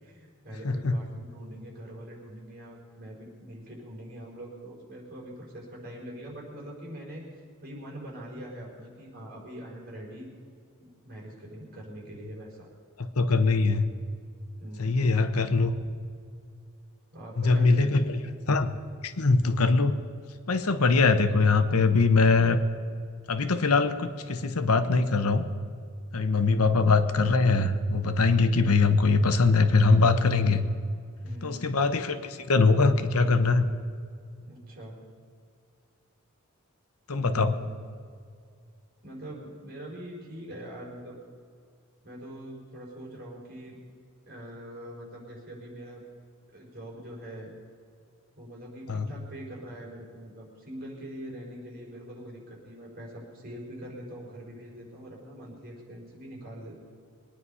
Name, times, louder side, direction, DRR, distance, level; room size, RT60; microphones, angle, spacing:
voice 1, 0.0-7.2 7.6-10.3 10.8-12.7 14.6-15.1 17.1-18.1 26.2-26.6 31.2-31.7 34.4-35.0 37.1-37.7 39.0-41.2 42.0-43.8 44.3-46.0 46.5-47.5 48.3-56.8, right 1 dB, 45° right, -3 dB, 4.8 m, -43 dB
voice 2, 0.6-1.0 13.2-13.9 14.8-15.7 17.4-18.0 18.5-18.7 19.0-20.0 20.5-22.6 23.3-25.4 26.1-30.6 31.4-33.6 37.1-37.5 48.9-49.1, left 3 dB, 75° left, 10 dB, 1.0 m, -22 dB
22.5 x 9.7 x 5.6 m, 2.2 s
head